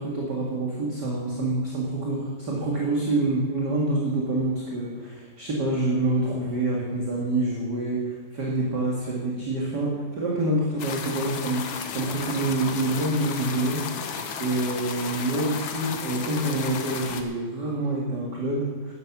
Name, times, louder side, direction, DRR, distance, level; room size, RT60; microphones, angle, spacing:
voice 1, 0.0-11.7 11.9-18.9, right 2 dB, 40° right, -3 dB, 2.1 m, -27 dB
sound 1, 10.8-17.2, left 6 dB, 65° left, 1.2 m, -34 dB
12.5 x 11.0 x 6.0 m, 1.5 s
omnidirectional pair, 3.6 m